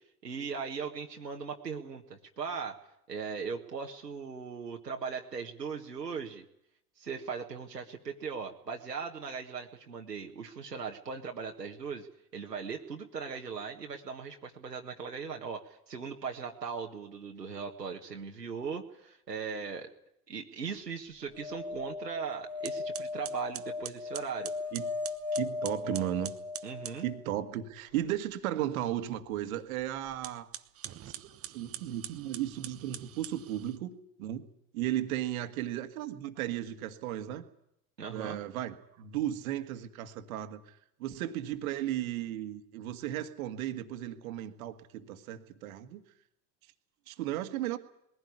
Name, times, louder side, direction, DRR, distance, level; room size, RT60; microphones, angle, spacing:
voice 1, 0.2-6.5 7.0-19.9 20.3-24.5 26.6-27.1 38.0-38.4, right 5 dB, 85° right, 2 dB, 1.7 m, -39 dB
sound 1, 21.3-27.5 29.8-29.9 30.1-30.2, left 3 dB, 5° left, 2.4 m, -38 dB
sound 2, 22.1-22.2 22.6-27.0 30.1-33.8, right 11 dB, 30° right, 1.1 m, -44 dB
voice 2, 25.3-26.3 27.0-30.5 31.0-33.9 34.2-34.4 34.7-37.5 38.1-46.0 47.1-47.8, right 12 dB, 60° right, 7 dB, 1.9 m, -35 dB
21.0 x 16.0 x 9.8 m, 0.77 s
figure-of-eight pair, 80°, 47 cm